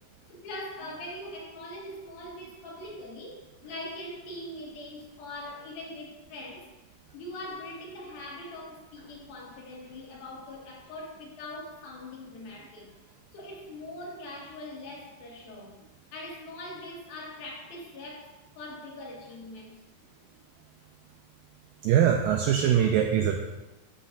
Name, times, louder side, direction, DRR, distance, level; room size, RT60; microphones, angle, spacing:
voice 1, 0.2-6.7 7.1-13.0 13.3-15.7 16.1-19.7, left 1 dB, 70° left, -3 dB, 3.6 m, -42 dB
voice 2, 21.8-23.4, right 9 dB, 90° right, 4 dB, 2.0 m, -22 dB
13.5 x 7.7 x 2.5 m, 1.0 s
omnidirectional pair, 4.6 m